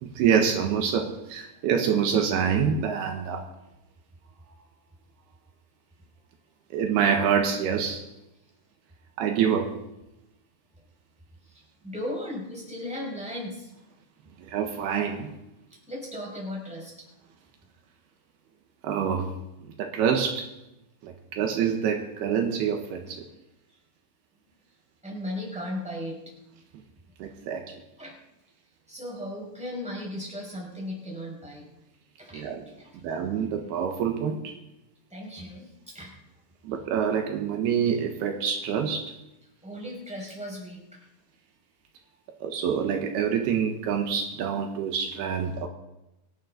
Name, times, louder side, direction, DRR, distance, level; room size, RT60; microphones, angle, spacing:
voice 1, 0.0-3.5 6.7-8.0 9.2-9.8 14.4-15.3 18.8-19.3 19.8-20.5 21.0-23.3 27.2-27.6 32.3-32.7 33.0-34.5 36.6-39.1 42.4-45.7, right 7 dB, 75° right, 3 dB, 3.1 m, -26 dB
voice 2, 11.5-13.7 15.9-16.9 25.0-26.2 28.0-28.2 28.9-31.7 32.2-32.5 32.8-32.9 35.1-36.2 39.6-41.1, left 1 dB, ahead, -3 dB, 5.2 m, -36 dB
25.0 x 11.5 x 3.9 m, 0.91 s
omnidirectional pair, 4.7 m